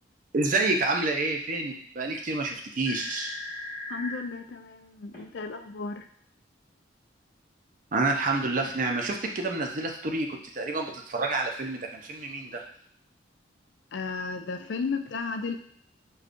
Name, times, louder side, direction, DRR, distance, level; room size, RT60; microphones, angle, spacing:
voice 1, 0.3-3.4 7.9-10.3 10.5-12.6, right 3 dB, 45° right, 1 dB, 0.5 m, -28 dB
sound 1, 2.8-4.2 5.1-5.2, left 2 dB, 45° left, 1.3 m, -37 dB
voice 2, 3.9-6.1 13.9-15.6, left 4 dB, 65° left, 5 dB, 0.4 m, -34 dB
6.5 x 2.3 x 2.5 m, 0.64 s
head